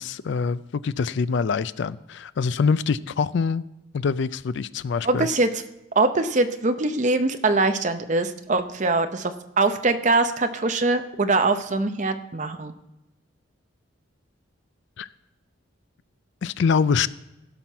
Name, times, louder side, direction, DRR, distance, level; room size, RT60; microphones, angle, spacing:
voice 1, 0.0-3.6 3.9-5.3 15.0-15.1 16.4-17.1, left 5 dB, 55° left, 17 dB, 0.3 m, -24 dB
voice 2, 5.0-5.6 6.0-12.7, right 3 dB, 35° right, 9 dB, 0.6 m, -23 dB
16.0 x 5.9 x 4.5 m, 0.95 s
head